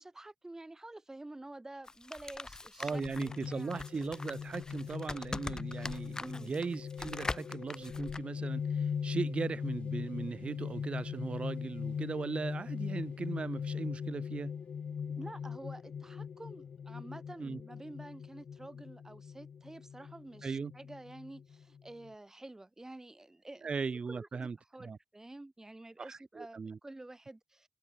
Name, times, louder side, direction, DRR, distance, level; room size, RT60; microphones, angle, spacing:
voice 1, 0.0-3.7 6.2-6.5 15.1-27.7, right 2 dB, 25° right, 0.8 m, -49 dB
sound 1, 1.8-8.2, left 2 dB, 30° left, 0.4 m, -42 dB
voice 2, 2.8-14.5 17.4-17.6 20.4-20.7 23.6-25.0 26.0-26.8, right 5 dB, 60° right, 0.5 m, -38 dB
sound 2, 2.9-22.1, left 7 dB, 85° left, 0.8 m, -40 dB
cardioid pair, 50°, 2 cm